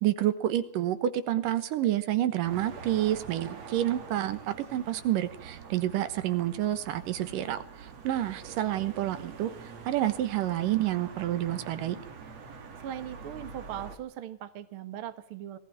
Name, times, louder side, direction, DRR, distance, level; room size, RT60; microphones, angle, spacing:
voice 1, 0.0-12.0, right 13 dB, 65° right, 11 dB, 2.6 m, -29 dB
sound 1, 2.4-14.0, right 5 dB, 45° right, 3.0 m, -45 dB
voice 2, 12.8-15.6, right 11 dB, 90° right, 11 dB, 1.1 m, -39 dB
20.0 x 15.0 x 9.1 m, 0.68 s
omnidirectional pair, 4.4 m